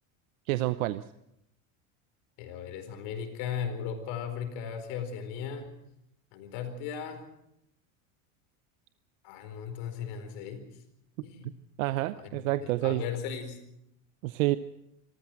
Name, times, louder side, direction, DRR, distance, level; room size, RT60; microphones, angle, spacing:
voice 1, 0.5-1.0 11.8-13.0 14.2-14.6, right 17 dB, 85° right, 13 dB, 0.8 m, -28 dB
voice 2, 2.4-5.7 6.3-7.2 9.2-10.6 11.2-11.6 12.1-12.3 12.6-13.6, left 7 dB, 65° left, 7 dB, 4.7 m, -37 dB
25.5 x 14.5 x 7.7 m, 0.82 s
supercardioid pair, 125°, 40 cm